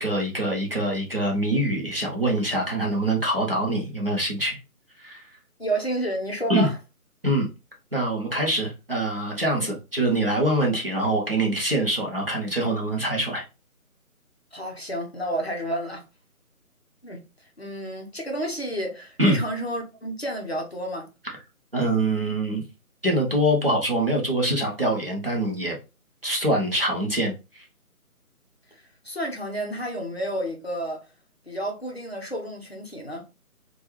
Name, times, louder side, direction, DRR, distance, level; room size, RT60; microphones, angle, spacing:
voice 1, 0.0-4.6 5.0-5.2 6.5-6.7 7.2-7.5 7.9-13.4 19.2-19.4 21.7-22.6 23.0-25.8 26.2-27.3, right 1 dB, 40° right, 0.7 m, -24 dB
voice 2, 5.6-6.8 9.6-9.7 14.5-16.0 17.0-17.2 17.6-21.1 29.0-31.0 31.5-33.3, right 1 dB, 45° left, 0.6 m, -30 dB
3.2 x 2.2 x 2.9 m
figure-of-eight pair, 175°, 45 cm